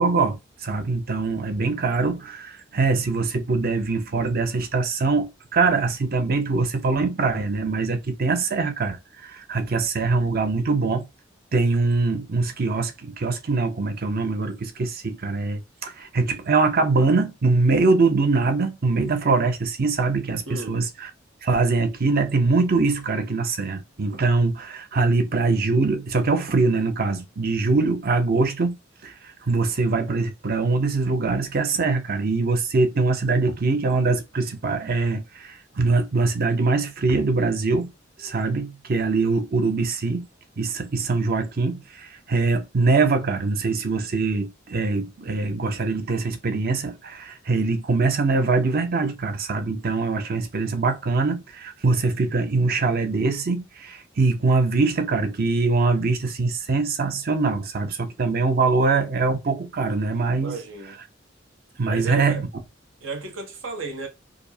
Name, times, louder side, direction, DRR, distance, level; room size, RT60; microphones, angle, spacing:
voice 1, 0.0-11.1 11.5-21.1 21.4-28.8 29.0-37.9 38.2-40.3 40.6-60.6 61.8-62.5, right 3 dB, 50° right, 0.6 m, -23 dB
voice 2, 20.5-20.8 60.4-61.0 61.8-62.4 63.0-64.1, right 3 dB, 85° right, 0.9 m, -34 dB
4.9 x 2.0 x 2.6 m
head